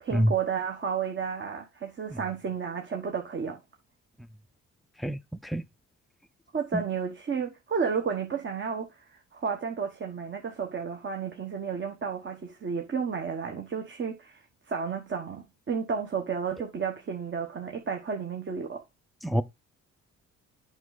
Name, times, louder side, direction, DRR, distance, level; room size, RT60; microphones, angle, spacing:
voice 1, 0.0-3.6 6.5-9.0 9.3-18.8, right 6 dB, 40° right, 1.3 m, -32 dB
voice 2, 5.0-5.7 19.2-19.4, equal, ahead, 0.5 m, -26 dB
7.9 x 5.5 x 4.0 m
cardioid pair, 90°, 30 cm